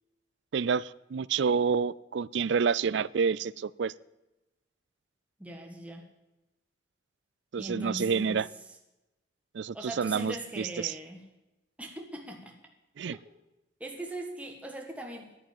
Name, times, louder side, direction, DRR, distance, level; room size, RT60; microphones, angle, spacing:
voice 1, 0.5-3.9 7.5-8.5 9.5-10.9 13.0-13.2, right 6 dB, 65° right, 21 dB, 0.4 m, -28 dB
voice 2, 5.4-6.1 7.5-8.7 9.7-11.2 11.8-12.5 13.8-15.3, right 1 dB, 5° right, 2 dB, 1.4 m, -40 dB
10.5 x 9.7 x 8.8 m, 1.0 s
head